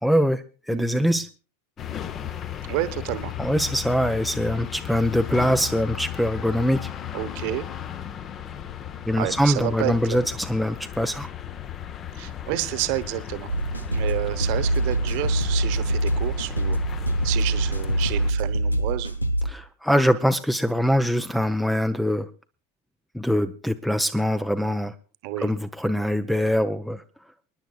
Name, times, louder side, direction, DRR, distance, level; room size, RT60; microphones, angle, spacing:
voice 1, 0.0-1.3 3.4-6.9 9.1-11.3 19.4-22.3 23.1-24.9 25.4-27.0, equal, ahead, 12 dB, 0.5 m, -23 dB
voice 2, 0.7-1.2 2.7-3.3 7.1-7.7 9.2-10.2 12.1-13.5 13.9-16.8 17.2-19.1 25.2-25.5, right 16 dB, 45° right, 12 dB, 1.2 m, -30 dB
sound 1, 1.8-18.3, left 10 dB, 30° left, 0.8 m, -35 dB
sound 2, 13.5-19.5, right 1 dB, 85° left, 0.9 m, -24 dB
28.0 x 10.0 x 2.4 m, 0.34 s
figure-of-eight pair, 90°, 0 cm